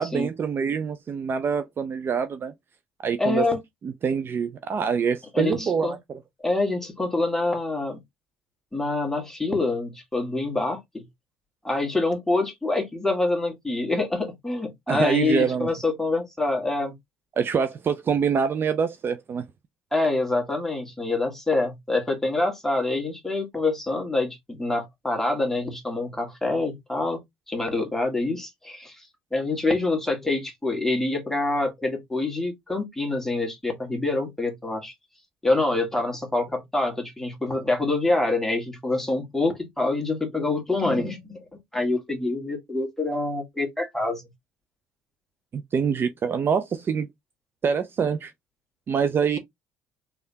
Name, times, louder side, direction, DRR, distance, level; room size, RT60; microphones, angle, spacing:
voice 1, 0.0-2.5 3.0-3.5 3.8-6.2 14.9-15.7 17.4-19.4 45.5-47.1 47.6-48.3 48.9-49.4, right 6 dB, 40° right, 0.5 m, -25 dB
voice 2, 3.2-3.6 5.3-5.9 6.4-8.0 8.7-11.0 11.6-16.9 19.9-29.0 29.3-34.9 35.4-41.4 41.7-44.2, left 2 dB, 5° left, 1.7 m, -26 dB
3.5 x 3.4 x 2.7 m
hypercardioid pair, 70°, 6 cm